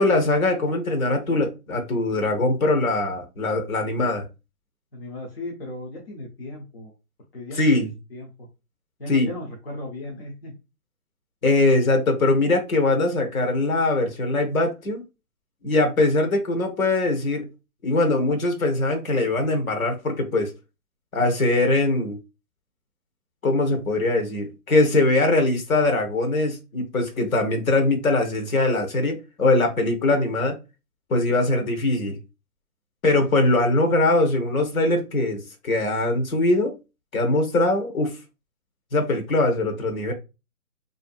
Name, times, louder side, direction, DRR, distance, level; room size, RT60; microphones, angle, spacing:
voice 1, 0.0-4.2 7.6-7.9 9.1-9.3 11.4-15.0 15.6-17.4 17.8-20.5 21.1-22.2 23.4-30.6 31.1-32.2 33.0-36.7 37.1-38.1 38.9-40.1, left 2 dB, 65° left, 0.9 m, -22 dB
voice 2, 4.9-6.9 7.3-8.5 9.0-10.5, left 2 dB, 40° left, 0.5 m, -36 dB
2.6 x 2.4 x 2.3 m
hypercardioid pair, 165°, 46 cm